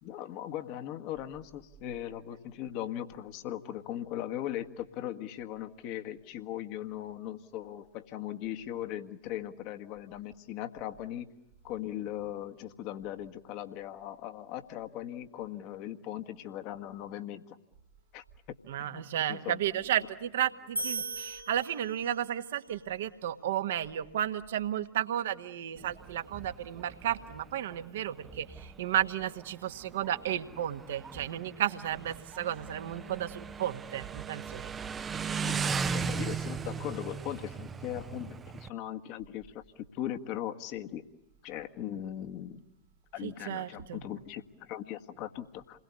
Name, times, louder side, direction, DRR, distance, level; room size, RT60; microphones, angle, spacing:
voice 1, 0.0-11.3 11.6-17.6 18.1-18.2 18.8-19.0 19.3-19.6 35.4-41.0 41.4-42.6 43.1-45.8, left 12 dB, 45° left, 7 dB, 1.7 m, -39 dB
voice 2, 18.7-34.7 35.5-35.7 43.2-44.0, right 11 dB, 60° right, 9 dB, 1.5 m, -33 dB
sound 1, 20.8-22.4, right 3 dB, 90° right, 2.1 m, -37 dB
Motorcycle, 25.8-38.7, right 6 dB, 20° right, 0.9 m, -38 dB
29.5 x 21.5 x 8.4 m, 0.94 s
figure-of-eight pair, 90°, 0 cm